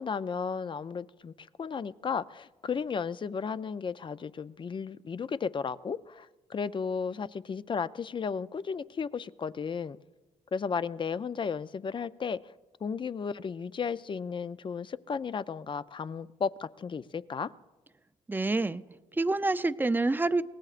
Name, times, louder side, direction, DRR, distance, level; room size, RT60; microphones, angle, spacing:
voice 1, 0.0-1.3 1.6-10.0 10.5-12.4 12.8-17.5, left 6 dB, 35° left, 15 dB, 0.5 m, -34 dB
voice 2, 18.3-18.8 19.1-20.4, right 2 dB, 15° right, 13 dB, 0.5 m, -27 dB
23.5 x 18.5 x 2.5 m, 1.2 s
cardioid pair, 80°, 13 cm